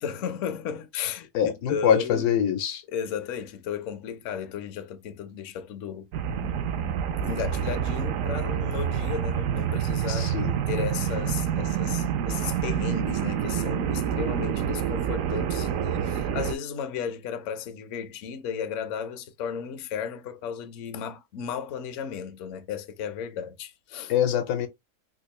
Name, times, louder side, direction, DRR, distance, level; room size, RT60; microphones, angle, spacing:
voice 1, 0.0-2.3 2.9-6.1 6.4-10.3 10.7-24.1, left 7 dB, 65° left, 0.8 m, -34 dB
voice 2, 1.3-2.8 10.1-10.6 24.1-24.7, left 9 dB, 85° left, 1.3 m, -24 dB
sound 1, 6.1-16.5, right 8 dB, 70° right, 0.8 m, -27 dB
3.6 x 2.4 x 3.1 m
omnidirectional pair, 1.7 m